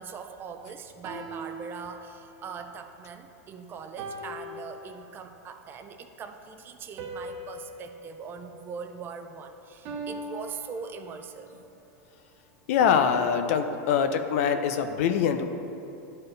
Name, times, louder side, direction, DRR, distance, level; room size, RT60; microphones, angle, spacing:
voice 1, 0.0-11.5, right 6 dB, 25° right, 7 dB, 0.4 m, -41 dB
sound 1, 1.0-2.4 4.0-5.4 7.0-9.3 9.9-11.4 12.8-14.4, right 2 dB, 40° right, 1.0 m, -41 dB
voice 2, 12.7-15.5, left 7 dB, 65° left, 8 dB, 0.5 m, -24 dB
11.5 x 4.3 x 3.3 m, 2.7 s
supercardioid pair, 135°, 8 cm